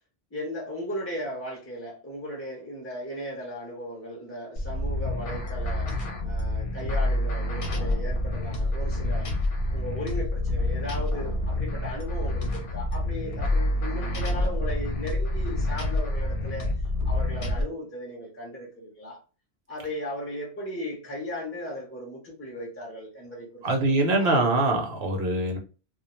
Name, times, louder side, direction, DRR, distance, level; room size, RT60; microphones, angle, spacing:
voice 1, 0.3-5.9 6.2-9.3 9.7-16.7 17.0-19.2 19.7-24.3, equal, 15° left, 0.5 m, -37 dB
sound 1, 4.6-17.6, left 1 dB, 55° left, 0.7 m, -28 dB
voice 2, 23.6-25.6, right 2 dB, 70° right, 0.8 m, -23 dB
2.3 x 2.1 x 2.9 m
omnidirectional pair, 1.1 m